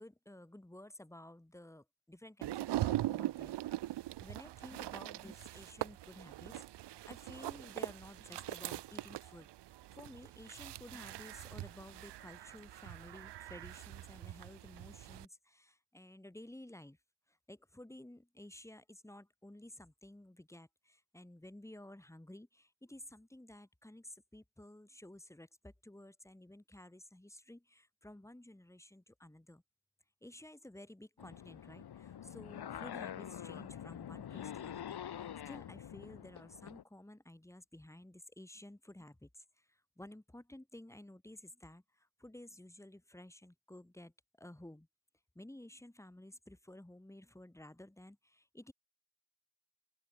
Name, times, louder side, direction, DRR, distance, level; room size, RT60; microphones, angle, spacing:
voice 1, 0.0-17.0 17.3-29.6 30.2-44.9 45.3-48.7, left 1 dB, 5° left, 1.3 m, -54 dB
sound 1, 2.4-15.2, right 15 dB, 75° right, 0.5 m, -42 dB
sound 2, 31.2-36.8, left 9 dB, 65° left, 0.9 m, -46 dB
open air
cardioid pair, 50°, 42 cm